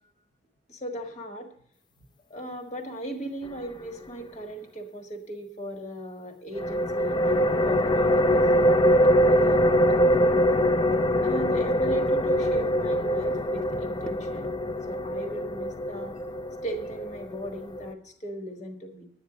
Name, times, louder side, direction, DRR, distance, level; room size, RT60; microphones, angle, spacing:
voice 1, 0.7-1.5 2.3-8.7 9.3-10.4 11.0-14.6 14.9-16.1 16.6-19.1, right 1 dB, 40° left, 4 dB, 1.6 m, -38 dB
sound 1, 6.5-17.9, equal, 25° left, 0.5 m, -23 dB
sound 2, 7.1-8.7 9.0-10.3 10.6-14.9, equal, 5° left, 0.9 m, -45 dB
11.5 x 9.4 x 5.0 m, 0.62 s
head